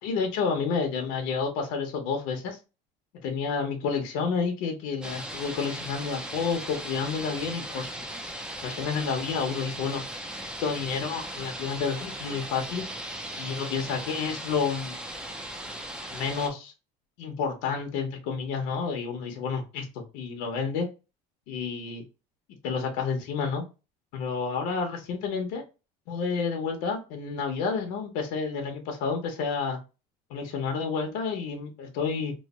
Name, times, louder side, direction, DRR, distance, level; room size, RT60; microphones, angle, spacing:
voice 1, 0.0-2.6 3.2-8.1 8.6-10.0 10.3-12.8 13.4-15.0 16.1-16.7 17.2-20.9 21.5-22.0 22.6-23.6 24.1-25.6 26.1-29.8 30.3-32.3, left 5 dB, 80° left, 4 dB, 0.9 m, -30 dB
sound 1, 5.0-16.5, right 1 dB, 5° right, 0.5 m, -38 dB
3.1 x 2.1 x 4.1 m, 0.30 s
cardioid pair, 140°, 16 cm